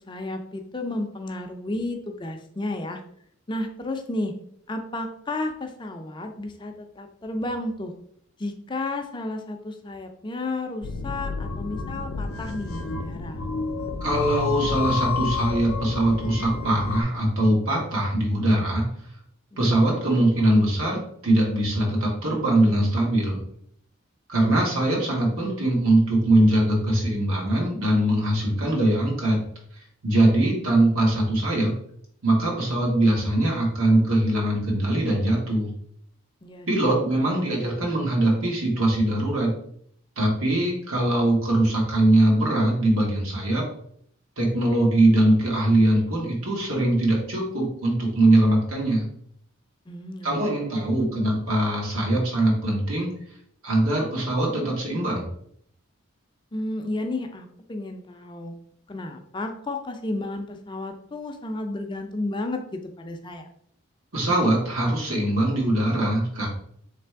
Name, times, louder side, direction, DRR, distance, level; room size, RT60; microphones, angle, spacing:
voice 1, 0.1-3.0 3.5-4.3 4.7-7.9 8.4-13.4 19.5-19.9 36.4-36.7 49.9-50.5 56.5-58.6 58.9-63.5, left 2 dB, 20° left, 5 dB, 0.4 m, -32 dB
sound 1, 10.8-17.0, left 4 dB, 85° left, 0.5 m, -30 dB
voice 2, 14.0-18.8 19.6-21.0 21.2-23.4 24.3-29.4 30.0-31.7 32.2-35.7 36.7-39.5 40.2-43.7 44.4-49.0 50.2-53.1 53.6-55.3 64.1-66.5, right 1 dB, 85° right, -2 dB, 1.6 m, -22 dB
3.3 x 3.3 x 4.5 m, 0.67 s
head